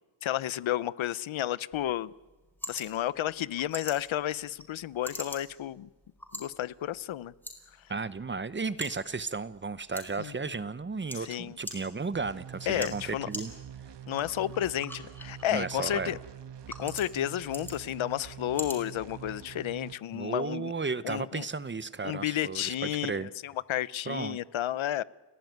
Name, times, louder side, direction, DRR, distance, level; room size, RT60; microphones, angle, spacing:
voice 1, 0.2-2.1 2.7-5.9 6.3-7.3 10.2-10.3 11.2-11.6 12.7-13.3 14.1-16.2 16.8-20.7 21.0-21.5 22.0-25.0, left 12 dB, 85° left, 19 dB, 0.8 m, -32 dB
sound 1, 1.7-19.7, equal, 5° left, 4.8 m, -46 dB
voice 2, 7.9-13.5 15.5-16.2 20.1-23.3 24.1-24.4, right 4 dB, 25° right, 15 dB, 0.8 m, -34 dB
sound 2, 12.1-19.9, right 9 dB, 65° right, 1.2 m, -45 dB
30.0 x 17.0 x 9.3 m, 1.2 s
wide cardioid pair, 135°, 46 cm